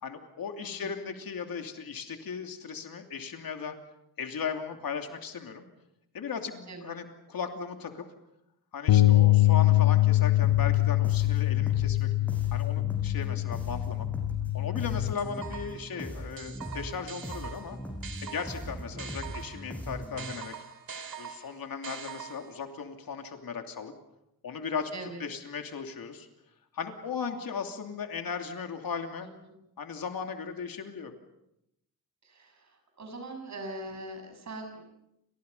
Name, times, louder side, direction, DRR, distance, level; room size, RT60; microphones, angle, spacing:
voice 1, 0.0-3.7 4.2-5.7 6.1-8.1 8.7-12.1 12.5-14.1 14.5-17.8 18.2-20.5 21.2-23.9 24.4-26.3 26.7-29.3 29.8-31.1, left 6 dB, 65° left, 5 dB, 2.9 m, -37 dB
voice 2, 0.6-0.9 6.7-6.9 18.9-19.0 24.9-25.2 29.4-29.5 32.2-34.8, right 2 dB, 45° right, 4 dB, 7.1 m, -42 dB
sound 1, 8.9-15.1, left 16 dB, 85° left, 1.0 m, -24 dB
sound 2, 10.4-20.3, equal, 5° left, 6.4 m, -40 dB
sound 3, 15.2-15.9 16.4-19.7 20.2-22.6, right 7 dB, 65° right, 3.0 m, -43 dB
30.0 x 27.5 x 5.6 m, 0.84 s
wide cardioid pair, 165°, 37 cm